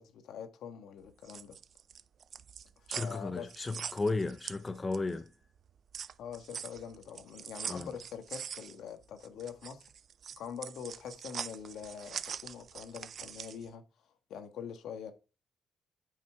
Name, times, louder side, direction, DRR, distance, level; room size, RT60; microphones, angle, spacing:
voice 1, 0.0-1.5 2.9-3.5 6.2-9.9 10.4-13.8 14.3-15.1, left 7 dB, 75° left, 1.5 m, -44 dB
sound 1, 1.1-5.2 5.6-13.7, right 8 dB, 55° right, 0.4 m, -43 dB
voice 2, 2.9-5.3 7.7-7.9, left 3 dB, 25° left, 0.6 m, -34 dB
9.2 x 5.7 x 4.6 m
cardioid pair, 90°, 0 cm